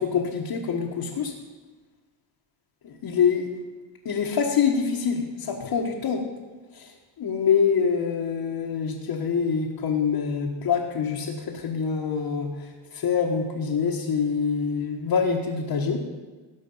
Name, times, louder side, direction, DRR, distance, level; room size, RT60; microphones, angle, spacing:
voice 1, 0.0-1.3 2.8-3.5 4.0-6.2 6.7-6.9 7.2-12.5 12.9-16.0, left 6 dB, 60° left, -2 dB, 1.6 m, -25 dB
17.5 x 6.2 x 5.6 m, 1.3 s
cardioid pair, 115°, 44 cm